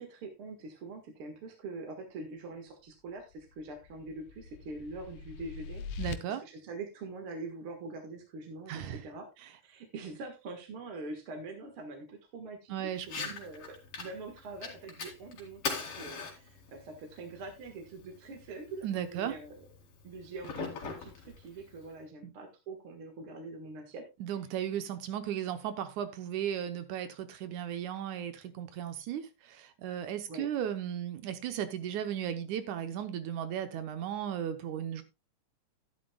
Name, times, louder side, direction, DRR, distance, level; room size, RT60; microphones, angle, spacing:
voice 1, 0.0-5.8 6.3-9.3 9.6-19.7 20.0-24.0 30.3-30.5, right 3 dB, 50° right, 3 dB, 2.2 m, -44 dB
sound 1, 3.3-6.1, left 6 dB, 85° left, 2.3 m, -43 dB
voice 2, 6.0-6.4 8.7-9.0 9.4-9.5 12.7-13.3 18.8-19.4 22.2-22.3 24.2-35.0, right 10 dB, 75° right, 10 dB, 2.2 m, -36 dB
Fire, 13.0-22.0, left 5 dB, 50° left, 3.2 m, -43 dB
12.0 x 11.0 x 2.3 m, 0.26 s
omnidirectional pair, 3.6 m